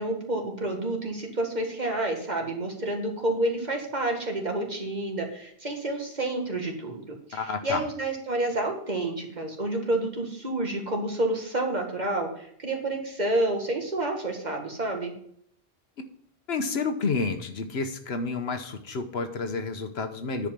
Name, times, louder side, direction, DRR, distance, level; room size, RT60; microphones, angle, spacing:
voice 1, 0.0-7.0 7.3-15.1, right 2 dB, 45° right, 2 dB, 2.0 m, -29 dB
voice 2, 7.3-7.8 16.5-20.5, left 4 dB, 80° left, 8 dB, 1.3 m, -30 dB
10.0 x 4.9 x 7.5 m, 0.67 s
omnidirectional pair, 1.1 m